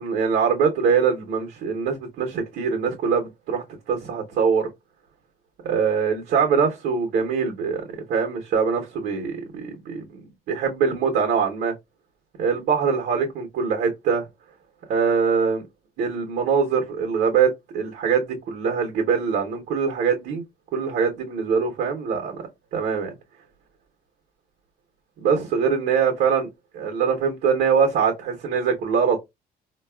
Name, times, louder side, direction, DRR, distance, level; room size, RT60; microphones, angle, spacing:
voice 1, 0.0-4.7 5.6-7.8 8.1-11.7 12.4-14.3 14.9-15.6 16.0-20.4 20.7-22.4 22.7-23.1 25.2-26.5 26.7-29.2, right 6 dB, 70° right, 0.9 m, -23 dB
3.9 x 2.3 x 2.2 m
cardioid pair, 110°, 17 cm